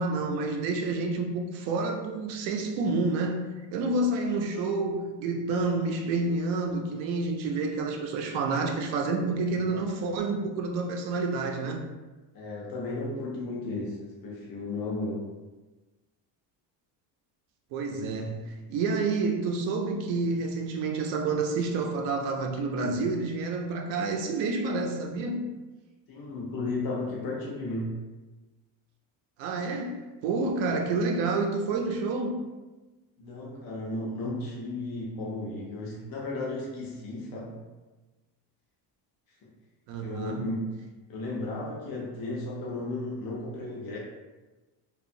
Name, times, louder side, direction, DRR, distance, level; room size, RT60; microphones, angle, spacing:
voice 1, 0.0-11.8 17.7-25.5 29.4-32.4 39.9-40.5, right 3 dB, 90° right, 2 dB, 0.6 m, -29 dB
voice 2, 9.4-10.0 12.3-15.2 26.1-28.0 33.2-37.5 40.0-40.6 41.1-44.0, left 2 dB, 50° left, -4 dB, 0.7 m, -34 dB
2.8 x 2.3 x 2.6 m, 1.2 s
cardioid pair, 135°, 44 cm